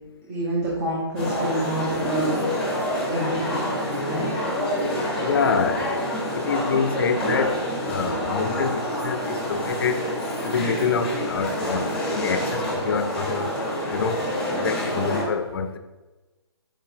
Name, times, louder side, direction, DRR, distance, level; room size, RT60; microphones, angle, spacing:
voice 1, 0.3-2.3 3.1-3.7 4.0-4.3, right 1 dB, 35° right, -6 dB, 0.8 m, -27 dB
sound 1, 1.2-15.2, equal, 5° left, 1.0 m, -27 dB
voice 2, 5.2-5.9 6.3-10.0 10.4-13.6 13.9-14.2 14.5-15.8, left 5 dB, 55° left, 9 dB, 0.4 m, -26 dB
4.6 x 3.8 x 2.6 m, 1.2 s
hypercardioid pair, 150°, 15 cm